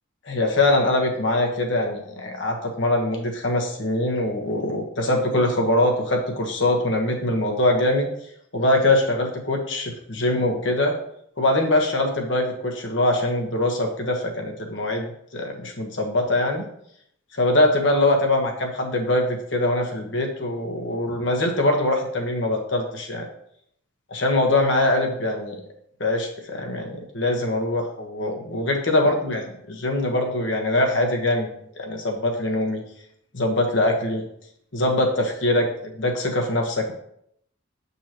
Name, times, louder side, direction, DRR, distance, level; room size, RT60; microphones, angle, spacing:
voice 1, 0.3-8.1 8.5-10.9 11.4-15.1 15.3-16.7 17.4-23.2 24.1-25.6 26.0-31.5 31.8-32.8 33.3-34.2 34.7-35.7 35.9-36.9, left 1 dB, 60° left, 2 dB, 1.3 m, -23 dB
8.0 x 5.5 x 3.0 m, 0.72 s
head